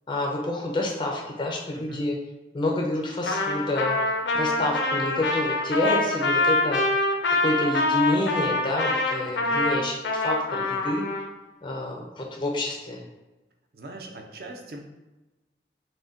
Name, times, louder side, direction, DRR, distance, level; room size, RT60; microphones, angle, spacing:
voice 1, 0.1-2.2 2.5-4.0 4.3-6.8 7.4-11.0 11.6-13.0, left 1 dB, 25° left, -1 dB, 0.4 m, -28 dB
voice 2, 1.7-2.1 9.4-9.6 13.7-14.8, right 2 dB, 55° right, 3 dB, 0.5 m, -41 dB
Trumpet, 3.3-11.3, left 2 dB, 85° left, 0.6 m, -25 dB
6.1 x 2.1 x 2.5 m, 1.1 s
head